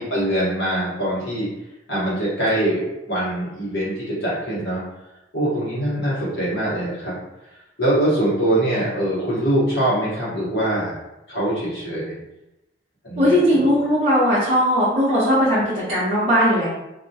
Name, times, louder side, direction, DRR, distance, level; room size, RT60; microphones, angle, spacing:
voice 1, 0.0-1.5 1.9-4.8 5.3-7.1 7.8-11.0 11.3-12.2 13.0-13.7, right 1 dB, 60° left, -9 dB, 1.0 m, -23 dB
voice 2, 13.2-16.7, equal, 35° right, -12 dB, 0.7 m, -18 dB
2.2 x 2.2 x 2.7 m, 0.92 s
head